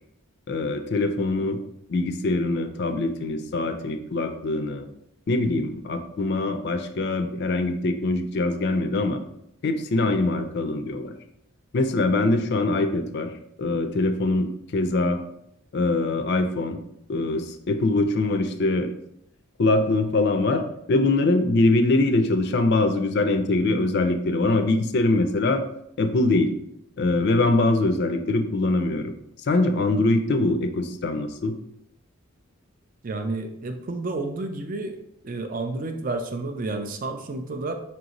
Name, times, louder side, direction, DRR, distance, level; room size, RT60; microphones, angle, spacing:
voice 1, 0.5-1.6 1.9-4.8 5.3-9.2 9.6-11.1 11.7-13.3 13.6-15.2 15.7-16.8 17.1-18.9 19.6-25.6 26.0-26.5 27.0-29.1 29.4-31.6, left 2 dB, 50° left, 7 dB, 0.4 m, -23 dB
voice 2, 33.0-35.0 35.2-37.7, right 2 dB, 40° right, 6 dB, 0.4 m, -30 dB
5.5 x 2.6 x 2.9 m, 0.77 s
head